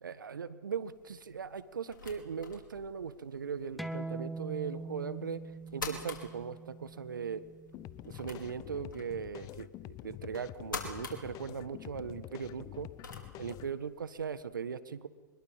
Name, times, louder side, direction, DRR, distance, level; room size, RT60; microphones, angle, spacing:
voice 1, 0.0-5.4 5.7-7.4 8.1-12.9 13.4-15.1, right 6 dB, 85° right, 14 dB, 1.5 m, -39 dB
sound 1, 0.8-14.4, left 4 dB, 85° left, 4.9 m, -48 dB
sound 2, 3.8-9.0, right 3 dB, ahead, 1.3 m, -43 dB
sound 3, 7.7-13.7, left 16 dB, 35° left, 0.7 m, -47 dB
24.0 x 21.5 x 7.4 m, 1.5 s
hypercardioid pair, 105°, 10 cm